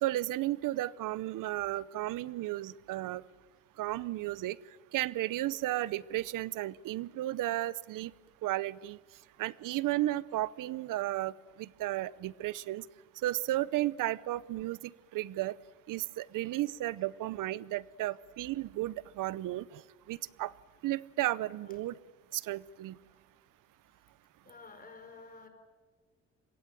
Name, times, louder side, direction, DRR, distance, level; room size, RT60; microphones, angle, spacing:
voice 1, 0.0-3.2 3.8-4.6 4.9-8.1 8.4-9.0 9.4-11.3 11.6-12.8 13.2-15.5 15.9-19.8 20.1-20.5 20.8-21.9 22.3-23.0, right 15 dB, 85° right, 21 dB, 0.8 m, -33 dB
voice 2, 24.4-25.5, left 4 dB, 25° left, 6 dB, 5.0 m, -51 dB
26.5 x 23.0 x 9.1 m, 1.4 s
cardioid pair, 150°, 31 cm